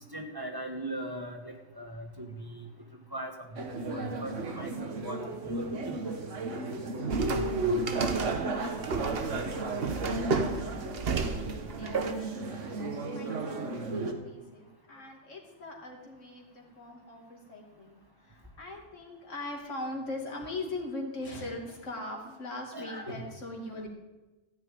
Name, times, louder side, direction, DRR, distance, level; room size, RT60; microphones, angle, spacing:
voice 1, 0.1-2.7 3.1-5.2 5.4-6.1 22.7-23.2, right 1 dB, 20° right, 3 dB, 1.3 m, -39 dB
sound 1, 3.6-14.1, right 2 dB, 70° right, 1.6 m, -33 dB
sound 2, 7.1-12.1, right 4 dB, 55° right, 1.2 m, -33 dB
voice 2, 11.7-23.9, left 2 dB, 75° left, 0 dB, 2.8 m, -41 dB
13.5 x 6.2 x 9.2 m, 1.1 s
omnidirectional pair, 1.3 m